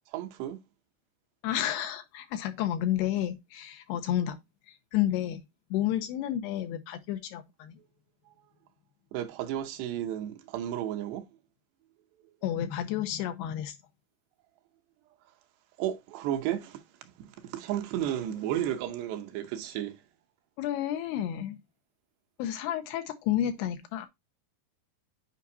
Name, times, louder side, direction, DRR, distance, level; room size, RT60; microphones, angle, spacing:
voice 1, 0.1-0.6 8.3-8.4 9.1-11.3 15.8-16.8 17.2-20.0, right 11 dB, 80° right, 2.7 m, -33 dB
voice 2, 1.4-4.4 4.9-5.4 5.7-7.7 12.4-13.8 20.6-21.6 22.4-24.1, left 11 dB, 80° left, 2.6 m, -31 dB
8.4 x 5.1 x 2.7 m
omnidirectional pair, 5.0 m